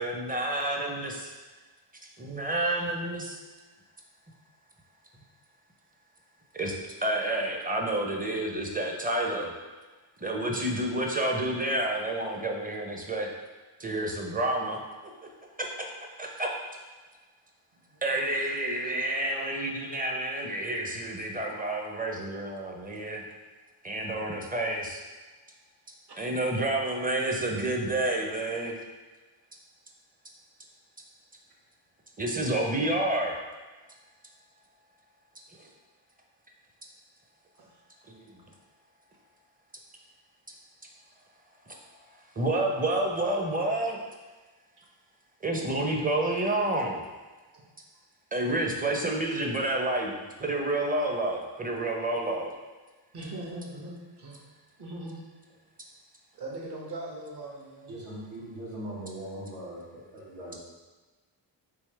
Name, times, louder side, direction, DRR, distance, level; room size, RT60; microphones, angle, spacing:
voice 1, 0.0-1.3 2.2-3.4 6.5-6.7 7.0-9.5 10.2-13.3 13.8-14.8 15.6-15.7 16.2-16.5 18.0-23.3 23.8-25.0 26.2-28.8 32.2-33.4 38.1-38.3 42.4-44.0 45.4-47.0 48.3-52.5, right 1 dB, 20° right, 1 dB, 0.6 m, -29 dB
voice 2, 17.9-18.2 37.6-37.7 53.1-54.4 54.8-55.2 56.3-58.0, right 2 dB, 55° right, -3 dB, 1.1 m, -40 dB
voice 3, 57.9-60.6, right 1 dB, 75° right, -6 dB, 1.5 m, -40 dB
3.5 x 2.8 x 3.3 m, 1.3 s
cardioid pair, 65°, 49 cm